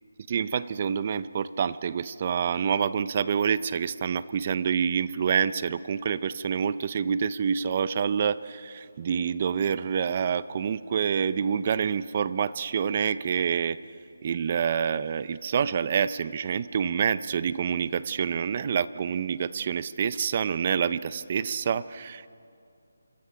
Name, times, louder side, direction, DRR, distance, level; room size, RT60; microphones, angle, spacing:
voice 1, 0.3-13.8 14.2-22.3, right 7 dB, 30° right, 17 dB, 0.5 m, -27 dB
26.5 x 25.0 x 5.8 m, 2.4 s
figure-of-eight pair, 170°, 0 cm